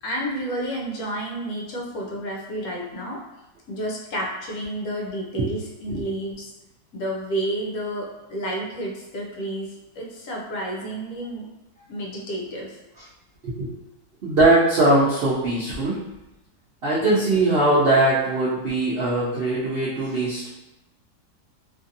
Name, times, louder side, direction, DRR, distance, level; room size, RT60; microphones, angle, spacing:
voice 1, 0.0-3.2 3.7-6.5 6.9-11.5 11.9-12.8, right 1 dB, 65° left, -2 dB, 1.0 m, -30 dB
voice 2, 14.2-16.0 16.8-20.5, right 2 dB, 80° right, -8 dB, 0.5 m, -20 dB
2.8 x 2.6 x 2.6 m, 0.96 s
omnidirectional pair, 1.8 m